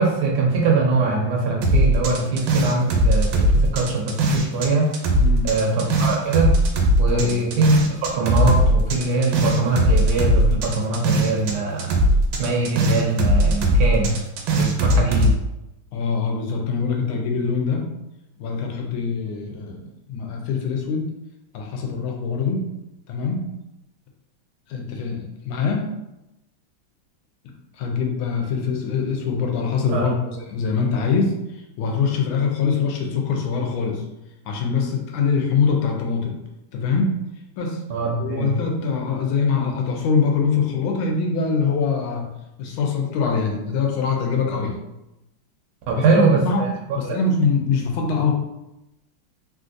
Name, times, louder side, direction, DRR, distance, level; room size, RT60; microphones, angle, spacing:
voice 1, 0.0-4.9 5.4-6.5 7.0-11.9 12.4-14.1 14.5-15.3 29.9-30.1 37.9-38.5 45.9-46.7 47.0-47.2, right 3 dB, 75° right, -1 dB, 0.9 m, -22 dB
sound 1, 1.6-4.7 4.9-11.5 11.8-15.3, equal, 90° right, 1.5 m, -19 dB
voice 2, 5.2-5.5 7.1-7.5 15.9-17.9 18.4-19.8 20.1-21.1 21.5-22.7 23.1-23.5 24.7-25.9 27.7-34.0 34.5-36.4 36.7-37.2 37.6-37.8 38.2-42.3 42.6-44.8 46.0-46.7 46.9-48.3, left 5 dB, 90° left, 1 dB, 1.4 m, -23 dB
3.4 x 2.5 x 2.5 m, 0.92 s
omnidirectional pair, 2.2 m